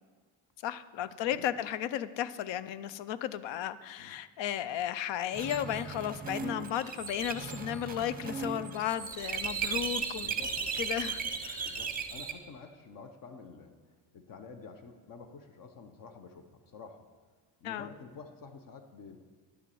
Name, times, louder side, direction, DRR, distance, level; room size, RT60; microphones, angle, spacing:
voice 1, 0.6-10.3 10.7-11.8 17.6-17.9, left 11 dB, 80° left, 15 dB, 0.7 m, -34 dB
sound 1, 5.3-12.3, right 5 dB, 20° right, 0.8 m, -36 dB
voice 2, 10.1-10.5 11.6-13.7 14.1-17.1 17.6-19.2, left 5 dB, 50° left, 7 dB, 0.8 m, -49 dB
11.0 x 7.0 x 7.7 m, 1.5 s
cardioid pair, 170°, 43 cm